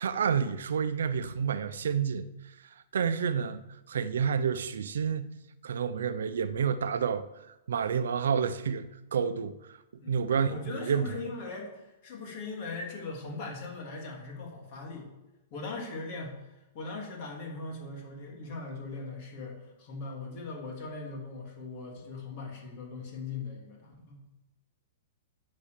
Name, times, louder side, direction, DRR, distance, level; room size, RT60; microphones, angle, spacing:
voice 1, 0.0-2.3 2.9-3.6 3.9-5.3 5.6-7.3 7.7-9.5 10.1-11.2, right 7 dB, 90° right, 0.8 m, -29 dB
voice 2, 10.0-15.1 15.5-24.2, left 3 dB, 30° left, 3.0 m, -40 dB
10.5 x 7.7 x 6.9 m
hypercardioid pair, 175°, 0 cm